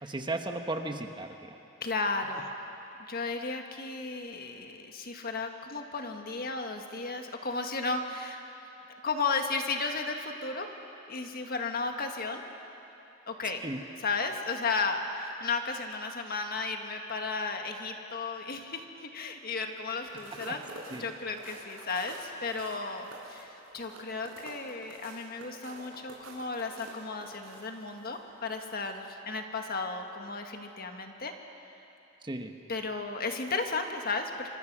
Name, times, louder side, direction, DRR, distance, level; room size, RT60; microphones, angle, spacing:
voice 1, 0.0-1.3 13.6-13.8 20.5-20.6 20.9-21.1 32.2-32.5, right 2 dB, 20° right, 5 dB, 1.1 m, -35 dB
voice 2, 1.8-2.5 3.1-8.4 9.0-10.7 11.1-12.4 13.3-13.6 14.0-20.7 21.0-31.3 32.7-34.5, left 4 dB, 45° left, 4 dB, 1.7 m, -34 dB
sound 1, 20.0-28.2 28.6-28.8, right 2 dB, 85° right, 4.5 m, -48 dB
26.0 x 25.0 x 6.1 m, 2.9 s
head